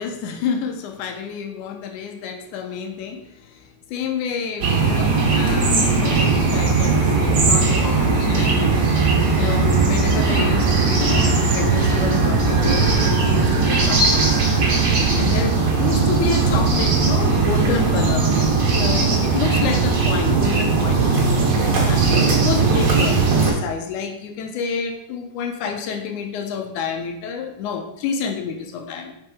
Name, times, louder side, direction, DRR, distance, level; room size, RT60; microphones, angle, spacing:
voice 1, 0.0-14.7 15.1-18.3 18.7-21.1 21.8-29.1, left 6 dB, 80° left, 4 dB, 2.1 m, -29 dB
sound 1, 4.6-23.5, right 4 dB, 50° right, 1.9 m, -18 dB
5.2 x 4.4 x 4.8 m, 0.84 s
omnidirectional pair, 3.6 m